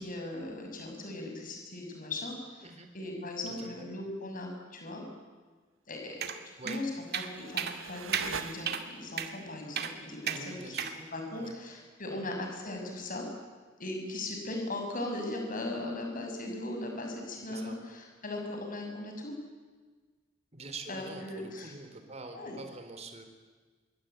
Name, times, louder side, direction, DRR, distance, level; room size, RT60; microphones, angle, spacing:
voice 1, 0.0-2.7 2.9-5.0 5.9-6.2 6.6-13.3 13.8-19.3 20.9-21.8 22.3-22.6, left 2 dB, 45° left, 3 dB, 6.6 m, -38 dB
voice 2, 3.5-3.9 6.6-6.8 10.3-10.8 11.4-11.5 12.1-12.3 17.5-17.8 20.5-23.3, right 3 dB, 35° right, 6 dB, 3.8 m, -45 dB
sound 1, 6.2-6.4 6.7-6.8 7.1-7.3 7.6-7.8 8.1-8.3 8.7-8.8 9.2-9.3 9.8-9.9 10.3-10.4 10.8-10.9, right 8 dB, 55° right, 2.2 m, -33 dB
sound 2, 6.8-9.2, right 6 dB, 90° right, 1.3 m, -43 dB
26.0 x 23.5 x 9.3 m, 1.4 s
head